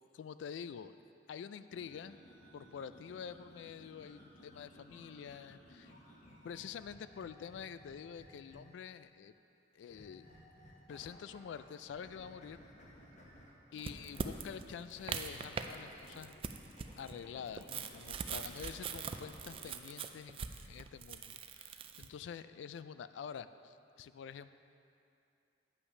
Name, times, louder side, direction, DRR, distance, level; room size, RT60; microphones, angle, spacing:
voice 1, 0.1-0.9 1.3-2.2 2.5-5.9 6.4-9.3 9.7-10.3 10.9-12.6 13.7-16.3 17.0-24.5, left 7 dB, 85° left, 14 dB, 0.3 m, -47 dB
sound 1, 1.7-8.9 9.9-11.6 11.9-16.3 16.7-19.7, equal, 40° left, 1.2 m, -58 dB
sound 2, 13.8-15.8 16.1-22.1, right 6 dB, 30° right, 0.3 m, -42 dB
8.4 x 5.7 x 5.4 m, 2.6 s
head